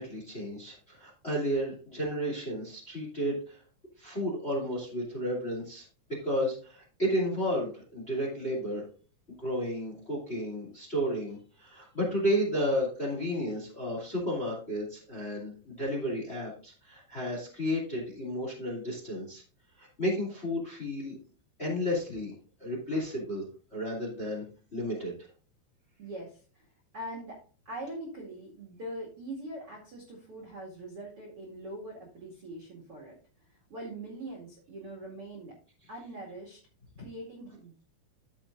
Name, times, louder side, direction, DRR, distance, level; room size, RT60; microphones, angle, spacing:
voice 1, 0.0-3.6 4.0-5.8 6.2-8.8 9.3-19.4 19.8-21.2 21.6-22.3 22.6-23.4 23.7-24.4 24.7-25.1, equal, 15° left, -3 dB, 2.3 m, -32 dB
voice 2, 26.0-26.6 26.9-27.4 27.6-33.1 33.7-35.6 35.9-36.6 37.0-37.8, right 1 dB, 40° right, -3 dB, 2.3 m, -42 dB
13.0 x 7.1 x 2.6 m, 0.39 s
omnidirectional pair, 5.3 m